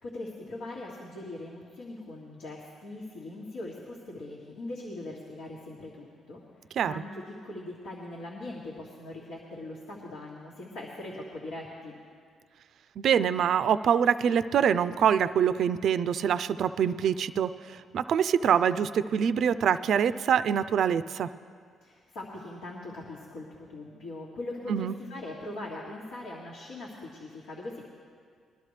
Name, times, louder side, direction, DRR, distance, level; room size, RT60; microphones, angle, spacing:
voice 1, 0.0-6.4 6.8-12.0 21.8-27.8, left 2 dB, 90° left, -5 dB, 1.9 m, -41 dB
voice 2, 13.0-21.3 24.7-24.9, right 8 dB, 65° right, 13 dB, 0.3 m, -25 dB
22.0 x 12.0 x 3.3 m, 2.1 s
cardioid pair, 90°, 0 cm